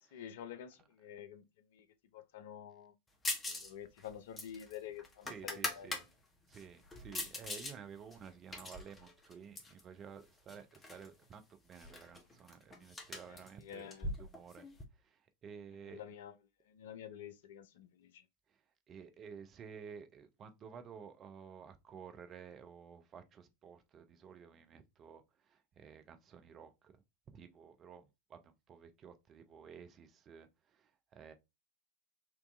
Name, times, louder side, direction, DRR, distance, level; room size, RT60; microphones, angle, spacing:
voice 1, 0.1-1.4 1.7-1.9 2.1-2.9 3.5-6.0 13.3-14.1 15.8-16.3 16.7-18.2, left 9 dB, 55° left, 0.5 m, -49 dB
sound 1, 3.2-3.7 4.0-6.0 6.5-7.7 8.1-9.8 10.5-11.1 11.3-11.4 11.7-14.8, left 2 dB, 15° left, 1.0 m, -42 dB
voice 2, 5.2-6.0 6.5-13.9 14.2-14.6 15.0-16.0 18.5-18.6 18.9-26.9 27.3-31.3, right 7 dB, 30° right, 0.6 m, -53 dB
4.5 x 2.7 x 2.5 m
figure-of-eight pair, 90°, 0 cm